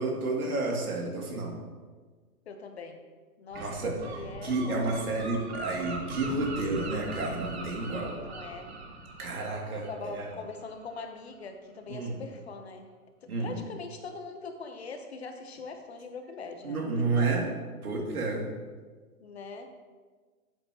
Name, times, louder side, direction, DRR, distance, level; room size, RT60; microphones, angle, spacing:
voice 1, 0.0-1.5 3.5-4.0 4.4-8.1 9.2-10.2 11.9-12.1 13.3-13.6 16.6-17.5 17.8-18.5, right 3 dB, 70° right, -1 dB, 2.8 m, -30 dB
voice 2, 2.5-3.0 3.4-5.1 8.2-8.7 9.9-12.9 13.2-17.3 19.2-19.7, left 4 dB, 45° left, 6 dB, 1.0 m, -42 dB
Gull seagull, 3.5-11.0, right 3 dB, 45° right, 1.4 m, -41 dB
12.5 x 7.9 x 3.0 m, 1.4 s
hypercardioid pair, 160°, 45 cm